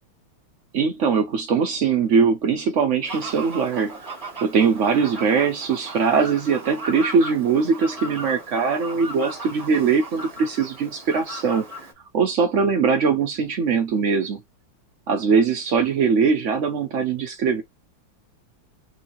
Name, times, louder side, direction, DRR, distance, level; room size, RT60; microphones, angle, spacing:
voice 1, 0.7-4.0 4.4-11.8 12.1-14.4 15.1-17.6, right 5 dB, 70° right, 0.7 m, -21 dB
Fowl, 3.1-11.9, right 2 dB, 25° right, 0.8 m, -36 dB
4.4 x 2.7 x 2.9 m
omnidirectional pair, 2.3 m